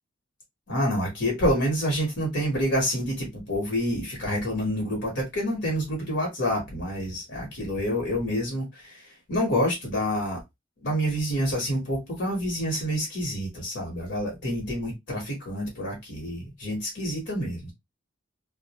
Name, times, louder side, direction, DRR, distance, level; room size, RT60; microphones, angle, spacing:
voice 1, 0.7-9.0 9.3-10.4 10.8-17.7, equal, 60° left, 1.0 m, -28 dB
2.3 x 2.0 x 2.9 m
head